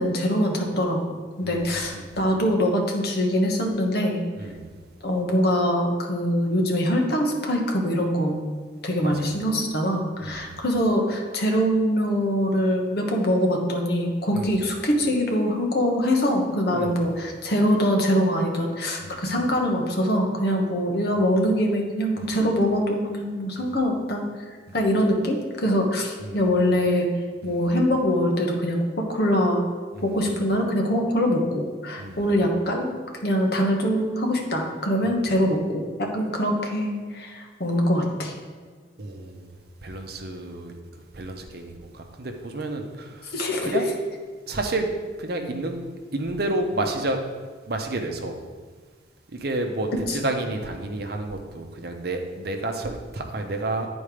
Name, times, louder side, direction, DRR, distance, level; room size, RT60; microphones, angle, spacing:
voice 1, 0.0-4.2 5.0-8.4 8.8-24.3 24.7-27.1 27.4-29.6 30.0-32.9 33.2-38.3 43.3-43.8, equal, 55° left, 1 dB, 1.3 m, -23 dB
voice 2, 1.4-2.2 4.3-4.8 9.0-9.3 10.2-10.6 14.3-14.6 16.7-17.2 19.0-19.3 22.2-22.4 23.6-23.7 24.7-24.8 25.7-25.8 26.2-26.5 27.4-27.7 29.9-30.3 32.0-32.4 35.0-35.1 39.0-39.5 39.8-40.7 41.1-43.4 43.6-43.9 44.5-44.9 45.2-45.8 46.1-47.3 47.7-48.4 49.3-53.9, right 2 dB, 50° right, 4 dB, 0.8 m, -31 dB
10.0 x 4.3 x 5.0 m, 1.5 s
head